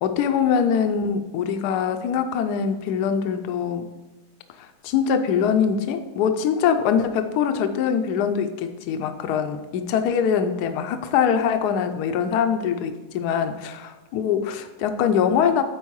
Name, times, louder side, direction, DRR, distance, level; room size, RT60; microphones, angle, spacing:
voice 1, 0.0-3.9 4.8-15.6, left 7 dB, 70° left, 9 dB, 1.1 m, -23 dB
8.2 x 4.8 x 4.7 m, 1.1 s
omnidirectional pair, 2.0 m